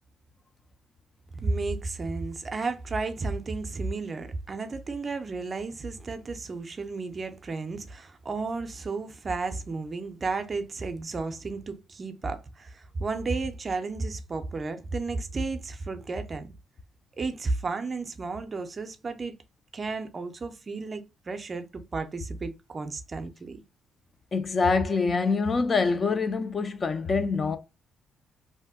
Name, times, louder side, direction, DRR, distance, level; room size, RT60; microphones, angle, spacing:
voice 1, 1.3-16.5 17.2-19.4 19.7-23.6, right 3 dB, 35° right, 0.5 m, -33 dB
voice 2, 24.3-27.6, left 4 dB, 35° left, 0.4 m, -25 dB
2.6 x 2.1 x 3.5 m
cardioid pair, 90°, 0 cm